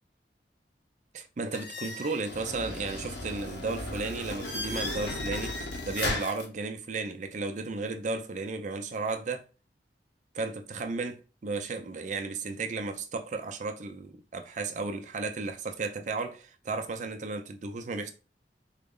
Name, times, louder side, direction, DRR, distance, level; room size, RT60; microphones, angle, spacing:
voice 1, 1.1-5.6 5.9-9.5 10.3-18.1, right 3 dB, 45° right, 0.4 m, -34 dB
sound 1, 1.5-6.4, left 2 dB, 80° left, 0.9 m, -35 dB
3.9 x 2.0 x 3.6 m
head